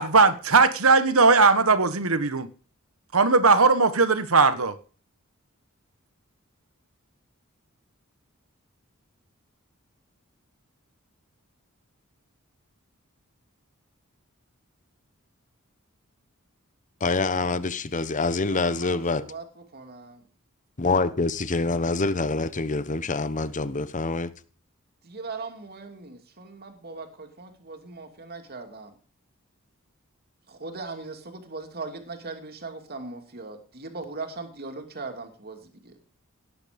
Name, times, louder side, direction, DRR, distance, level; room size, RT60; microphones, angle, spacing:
voice 1, 0.0-2.5 3.1-4.8, right 4 dB, 80° right, 1.4 m, -19 dB
voice 2, 17.0-19.2 20.8-24.3, left 3 dB, 35° left, 1.0 m, -26 dB
voice 3, 18.6-19.4 19.7-20.2 25.0-28.9 30.5-35.9, right 3 dB, 50° right, 2.7 m, -39 dB
17.5 x 9.6 x 5.2 m
head